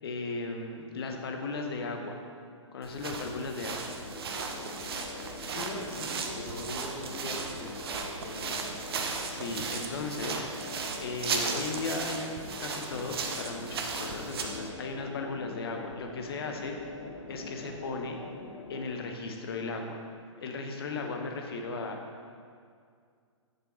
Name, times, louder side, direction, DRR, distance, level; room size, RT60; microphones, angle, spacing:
voice 1, 0.0-2.2 2.7-4.0 9.3-10.5 11.0-16.7 17.3-18.2 18.7-20.0 20.4-22.0, left 3 dB, 50° left, 3 dB, 1.0 m, -36 dB
sound 1, 2.8-14.7, right 5 dB, 50° right, 0.8 m, -36 dB
sound 2, 3.8-18.9, left 3 dB, 70° left, 1.3 m, -44 dB
voice 2, 5.5-8.8, left 1 dB, 30° left, -4 dB, 1.4 m, -41 dB
6.9 x 6.8 x 4.3 m, 2.2 s
figure-of-eight pair, 120°, 16 cm